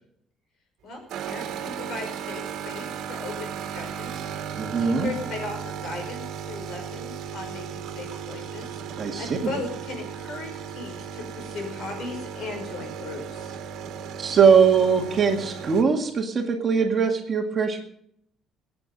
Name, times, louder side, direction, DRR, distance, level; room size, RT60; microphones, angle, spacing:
voice 1, 0.8-13.5, left 3 dB, 50° left, 3 dB, 5.6 m, -37 dB
sound 1, 1.1-15.8, right 7 dB, 60° right, 1.9 m, -36 dB
voice 2, 4.6-5.1 9.0-9.5 14.2-17.8, right 6 dB, 30° right, 2 dB, 1.9 m, -21 dB
22.0 x 8.8 x 5.3 m, 0.70 s
cardioid pair, 170°, 0 cm